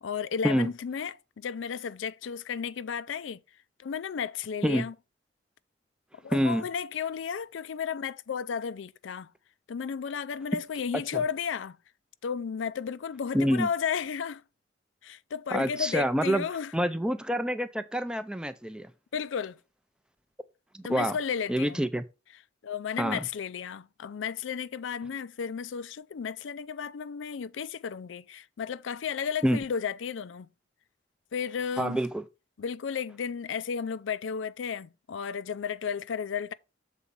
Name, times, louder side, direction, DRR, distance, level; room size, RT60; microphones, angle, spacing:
voice 1, 0.0-3.4 3.8-4.9 6.2-9.3 9.7-11.8 12.2-14.4 15.0-16.7 19.1-19.6 20.8-21.8 22.6-30.5 31.3-32.0 32.6-36.5, left 7 dB, 85° left, 0.4 m, -33 dB
voice 2, 6.3-6.6 10.9-11.2 13.3-13.7 15.5-16.4 16.7-18.9 20.7-21.2 21.5-22.0 23.0-23.2 29.4-29.6 31.8-32.2, equal, 5° right, 0.4 m, -27 dB
7.2 x 4.1 x 5.2 m
head